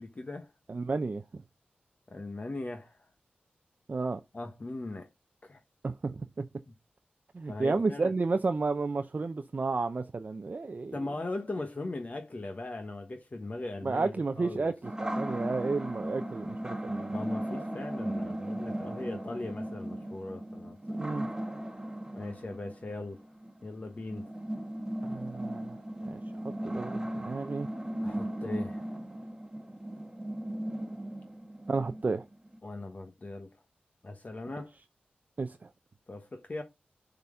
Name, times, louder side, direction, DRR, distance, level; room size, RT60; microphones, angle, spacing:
voice 1, 0.0-0.5 2.1-3.0 4.3-5.1 5.4-5.6 6.7-6.8 7.5-8.1 10.9-14.7 17.1-20.8 21.1-21.2 22.1-23.2 23.6-24.3 28.0-28.9 32.6-33.6 34.0-34.7 36.1-36.6, left 2 dB, 40° left, 1.1 m, -39 dB
voice 2, 0.7-1.4 3.9-4.2 5.8-6.5 7.3-10.9 13.8-17.1 21.0-21.3 25.0-25.8 26.1-26.2 26.6-27.7 31.7-32.2 35.4-35.7, right 3 dB, 45° right, 0.6 m, -32 dB
sound 1, 14.8-32.6, right 1 dB, 15° right, 1.4 m, -37 dB
7.0 x 4.0 x 4.9 m
cardioid pair, 50°, 4 cm